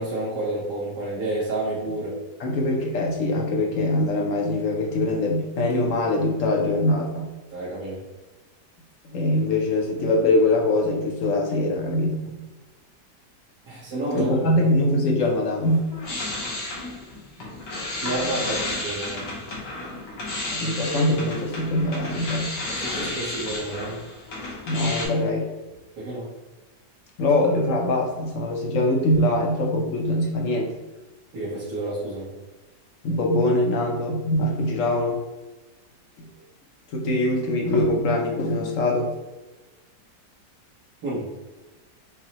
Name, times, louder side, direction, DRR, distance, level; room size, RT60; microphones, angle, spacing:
voice 1, 0.0-2.1 7.5-8.0 13.7-14.5 18.0-19.3 22.7-24.0 26.0-26.3 31.3-32.3 41.0-41.3, right 1 dB, 75° right, -11 dB, 1.8 m, -30 dB
voice 2, 2.4-7.3 9.1-12.4 14.1-15.9 20.5-22.6 24.7-25.5 27.2-30.7 33.0-35.2 36.9-39.1, left 1 dB, 60° left, 0 dB, 0.9 m, -23 dB
sound 1, 15.6-25.1, left 2 dB, 80° left, 1.7 m, -32 dB
5.4 x 2.1 x 2.9 m, 1.2 s
omnidirectional pair, 1.8 m